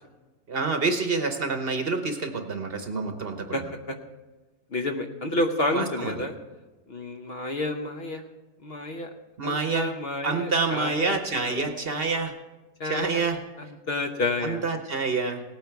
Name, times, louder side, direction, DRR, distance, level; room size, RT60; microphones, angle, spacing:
voice 1, 0.5-3.6 5.7-6.1 9.4-9.9 10.2-12.3 12.8-13.4 14.4-15.4, right 4 dB, 45° right, 6 dB, 1.0 m, -27 dB
voice 2, 3.5-4.0 4.7-6.3 6.9-8.2 8.6-9.1 9.4-11.7 12.8-13.2 13.6-14.6, left 2 dB, 50° left, 5 dB, 1.0 m, -30 dB
17.5 x 9.1 x 4.6 m, 1.2 s
omnidirectional pair, 1.5 m